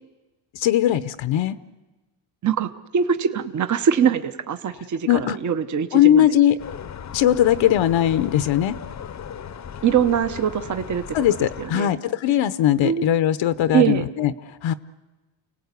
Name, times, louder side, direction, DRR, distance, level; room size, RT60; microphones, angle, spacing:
voice 1, 0.5-1.6 5.1-5.4 5.9-6.6 7.1-8.8 11.1-14.7, left 11 dB, 65° left, 13 dB, 0.8 m, -19 dB
voice 2, 2.4-6.2 9.8-11.2 11.6-11.9 12.8-13.0 13.7-14.1, right 8 dB, 35° right, 10 dB, 0.9 m, -22 dB
sound 1, 6.6-11.7, left 8 dB, 35° left, 0.8 m, -36 dB
29.0 x 18.0 x 8.2 m, 1.2 s
cardioid pair, 130°, 49 cm